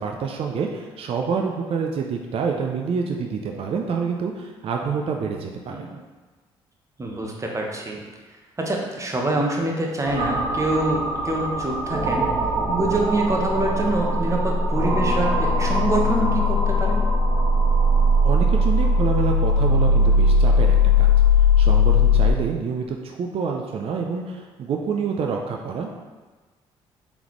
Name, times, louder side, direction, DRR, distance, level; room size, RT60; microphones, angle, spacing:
voice 1, 0.0-5.9 18.2-21.1 21.6-25.9, right 5 dB, 55° right, 2 dB, 0.4 m, -27 dB
voice 2, 5.7-6.0 7.0-8.0 8.6-12.3 12.7-17.0, right 2 dB, 25° right, 0 dB, 0.9 m, -25 dB
sound 1, 10.0-22.3, left 2 dB, 80° right, 0.9 m, -19 dB
3.7 x 3.5 x 3.1 m, 1.3 s
supercardioid pair, 55°, 12 cm